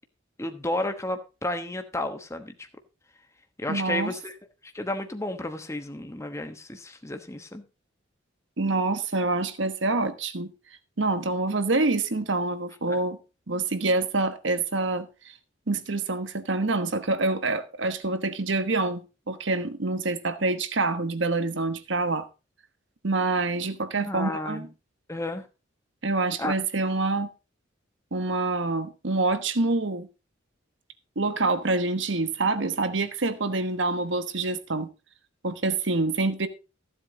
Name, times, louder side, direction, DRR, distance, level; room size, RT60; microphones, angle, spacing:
voice 1, 0.4-2.5 3.6-4.3 4.7-7.6 12.9-13.0 24.0-24.7 25.1-25.4 26.4-26.5, left 1 dB, 15° left, 1.1 m, -32 dB
voice 2, 3.7-4.1 8.6-10.5 11.0-13.2 13.5-15.1 15.7-19.0 19.3-22.3 23.0-24.7 26.0-27.3 28.1-30.1 31.2-34.9 35.4-36.5, right 3 dB, 65° right, 1.2 m, -26 dB
14.5 x 7.9 x 3.8 m
head